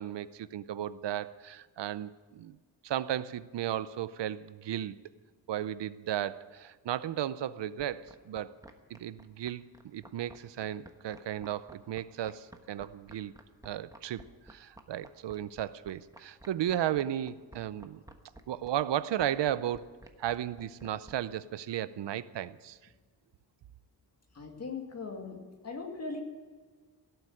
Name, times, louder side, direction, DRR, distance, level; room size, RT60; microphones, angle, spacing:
voice 1, 0.0-2.6 2.8-5.0 5.5-8.5 8.9-13.3 13.6-14.2 14.5-18.0 18.5-19.9 20.2-22.8, right 11 dB, 80° right, 16 dB, 0.7 m, -35 dB
sound 1, 7.8-21.2, right 1 dB, 10° right, 1.2 m, -51 dB
voice 2, 24.3-26.2, left 4 dB, 35° left, 3 dB, 2.4 m, -39 dB
17.5 x 8.0 x 9.8 m, 1.4 s
wide cardioid pair, 145°, 42 cm